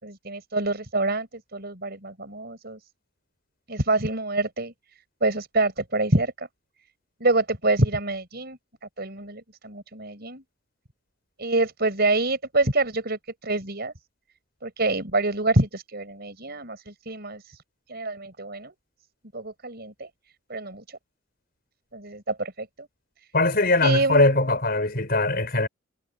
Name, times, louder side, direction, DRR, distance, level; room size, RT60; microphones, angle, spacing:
voice 1, 0.0-2.8 3.7-4.7 5.2-6.5 7.2-8.6 9.0-10.4 11.4-13.9 14.6-17.6 17.9-18.7 19.3-20.1 20.5-21.0 21.9-22.9 23.8-24.5, right 2 dB, 50° right, 6.0 m, -26 dB
voice 2, 23.3-25.7, left 2 dB, 50° left, 4.9 m, -21 dB
head